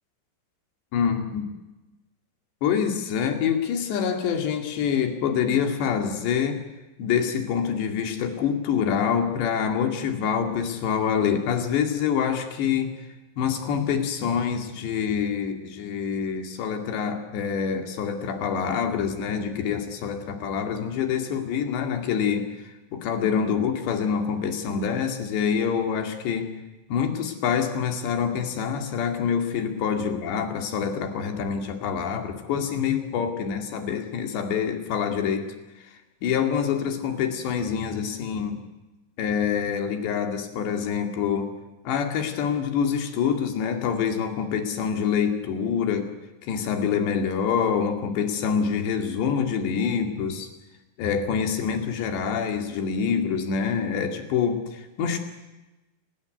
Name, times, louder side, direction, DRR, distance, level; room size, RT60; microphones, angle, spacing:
voice 1, 0.9-1.4 2.6-6.6 7.0-12.9 13.4-26.5 26.9-35.5 36.2-38.6 39.2-41.5 41.8-46.1 46.4-50.5 51.0-55.2, left 7 dB, 70° left, 6 dB, 4.6 m, -26 dB
28.5 x 19.5 x 9.4 m, 1.1 s
omnidirectional pair, 5.3 m